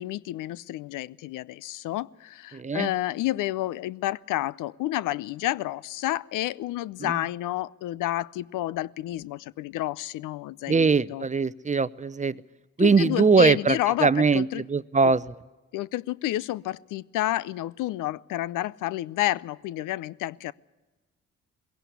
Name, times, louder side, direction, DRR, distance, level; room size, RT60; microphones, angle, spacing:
voice 1, 0.0-11.3 12.8-14.6 15.0-15.1 15.7-20.5, left 15 dB, 65° left, 21 dB, 0.6 m, -30 dB
voice 2, 2.5-2.9 7.0-7.2 10.7-12.3 12.8-15.2, right 4 dB, 20° right, 18 dB, 0.6 m, -22 dB
20.5 x 17.0 x 8.2 m, 1.2 s
hypercardioid pair, 45°, 33 cm